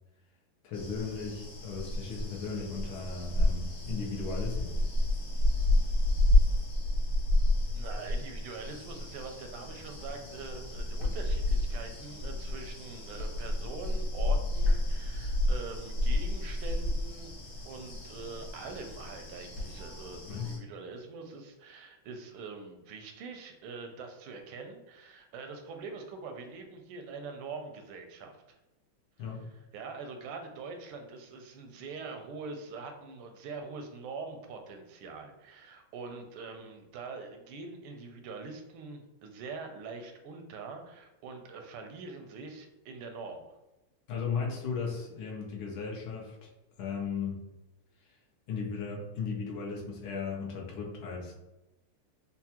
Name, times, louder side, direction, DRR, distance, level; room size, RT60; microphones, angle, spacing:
voice 1, 0.6-4.7 20.2-20.5 29.2-29.4 44.1-46.4 46.8-47.4 48.5-51.3, left 5 dB, 75° left, -2 dB, 1.5 m, -36 dB
sound 1, 0.7-20.6, left 1 dB, 55° left, 1.3 m, -30 dB
voice 2, 7.7-17.3 17.6-28.6 29.7-43.4, right 4 dB, 85° right, 5 dB, 1.5 m, -43 dB
4.5 x 2.1 x 2.8 m, 0.96 s
omnidirectional pair, 2.3 m